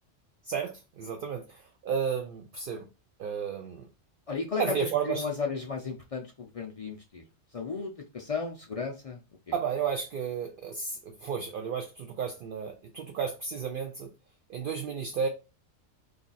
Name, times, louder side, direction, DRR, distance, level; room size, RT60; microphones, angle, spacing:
voice 1, 0.4-2.9 3.2-3.9 4.6-5.3 9.5-14.1 14.5-15.3, right 6 dB, 65° right, 0.5 m, -32 dB
voice 2, 4.3-7.2 7.5-9.2, left 4 dB, 60° left, 0.3 m, -34 dB
3.3 x 2.3 x 4.0 m
omnidirectional pair, 1.3 m